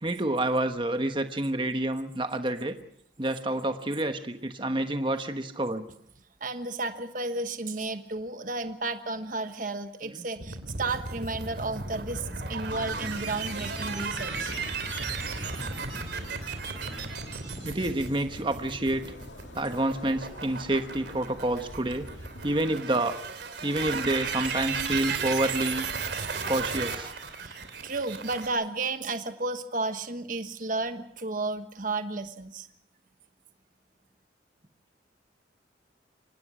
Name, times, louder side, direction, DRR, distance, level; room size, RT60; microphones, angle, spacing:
voice 1, 0.0-2.7 3.2-5.9 10.1-10.2 17.6-19.0 19.5-22.1 22.4-23.2 23.6-25.9 26.5-27.1, right 1 dB, 25° right, 7 dB, 1.2 m, -28 dB
voice 2, 6.4-14.5 22.8-23.0 23.9-24.2 24.7-25.3 26.2-26.5 27.4-32.7, right 3 dB, 45° right, 8 dB, 1.3 m, -33 dB
sound 1, 10.4-28.5, right 4 dB, 65° right, 3.0 m, -35 dB
sound 2, 12.7-22.7, left 1 dB, 85° left, 2.3 m, -46 dB
24.5 x 18.5 x 6.2 m, 0.71 s
head